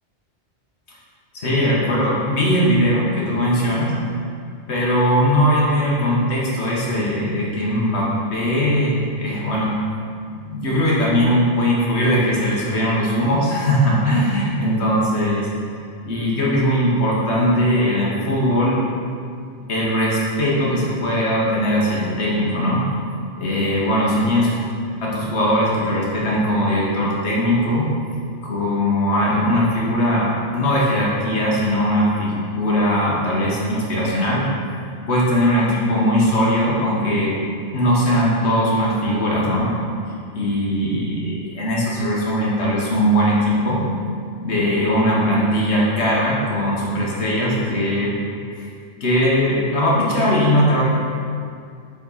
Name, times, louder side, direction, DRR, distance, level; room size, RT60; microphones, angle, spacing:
voice 1, 1.3-3.9 4.7-9.7 10.4-15.5 16.0-18.8 19.7-22.9 23.4-24.5 25.0-27.9 28.4-34.6 35.1-37.4 37.7-39.8 40.3-43.8 44.4-48.2 48.6-48.7 49.0-50.8, equal, 70° left, -5 dB, 1.6 m, -20 dB
7.3 x 4.4 x 4.1 m, 2.3 s
omnidirectional pair, 1.2 m